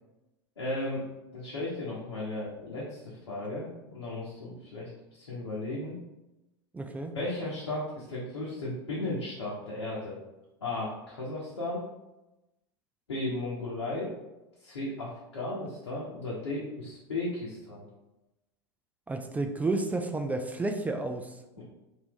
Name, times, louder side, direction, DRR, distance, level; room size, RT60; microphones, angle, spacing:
voice 1, 0.6-1.0 1.3-5.9 7.1-10.2 10.6-11.8 13.1-14.1 14.6-17.8 21.6-21.7, left 2 dB, 85° left, -6 dB, 0.9 m, -35 dB
voice 2, 6.7-7.1 19.1-21.6, right 2 dB, 10° right, 5 dB, 0.3 m, -31 dB
2.9 x 2.6 x 3.5 m, 0.98 s
hypercardioid pair, 90°, 14 cm